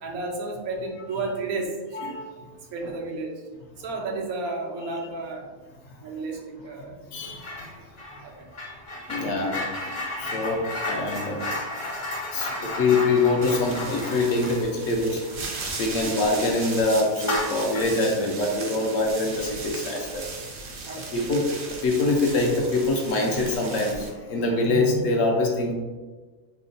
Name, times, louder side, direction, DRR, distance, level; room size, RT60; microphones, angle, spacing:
voice 1, 0.0-2.1 2.7-3.4 3.8-5.5 6.0-6.9 8.2-8.5 9.1-9.3 15.9-16.2 20.8-21.2, right 3 dB, 75° right, 1 dB, 1.1 m, -32 dB
voice 2, 7.1-7.8 9.1-12.0 12.3-15.2 15.8-20.2 21.1-21.6 21.8-25.7, left 2 dB, 70° left, 0 dB, 0.9 m, -24 dB
sound 1, 7.4-7.7 8.0-16.2 16.5-16.6 17.2-18.0, left 2 dB, 35° left, 0.5 m, -33 dB
sound 2, 13.4-24.1, right 3 dB, 60° right, 0.8 m, -37 dB
5.6 x 2.1 x 2.5 m, 1.3 s
omnidirectional pair, 1.5 m